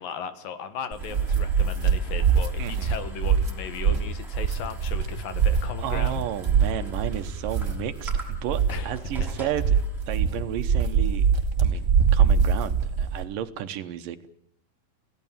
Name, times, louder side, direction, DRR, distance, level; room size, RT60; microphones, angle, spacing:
voice 1, 0.0-6.2 8.7-8.9 9.2-9.3, left 7 dB, 75° left, 11 dB, 3.3 m, -37 dB
sound 1, 0.9-13.2, right 6 dB, 30° right, 2.9 m, -24 dB
sound 2, 1.0-11.3, right 1 dB, ahead, 5.9 m, -48 dB
voice 2, 2.6-2.9 5.8-9.8 10.1-11.3 11.6-14.3, right 10 dB, 75° right, 10 dB, 2.7 m, -33 dB
29.0 x 17.0 x 7.3 m, 0.72 s
omnidirectional pair, 4.1 m